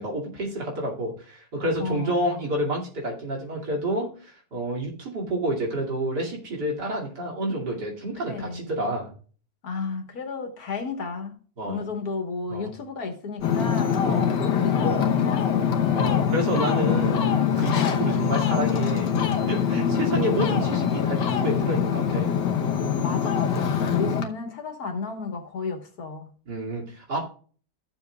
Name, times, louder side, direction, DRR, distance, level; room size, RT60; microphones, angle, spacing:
voice 1, 0.0-9.1 11.6-11.8 12.5-12.7 14.0-14.3 15.9-17.2 17.6-22.3 26.5-27.2, right 1 dB, 75° right, 3.2 m, -29 dB
voice 2, 1.8-2.5 8.3-8.7 9.6-11.4 11.6-15.9 16.8-17.5 19.6-20.4 23.0-26.3, left 4 dB, 60° left, 1.9 m, -33 dB
Ocean, 13.4-24.2, left 7 dB, 85° left, 1.6 m, -23 dB
15.0 x 7.1 x 2.3 m
omnidirectional pair, 1.8 m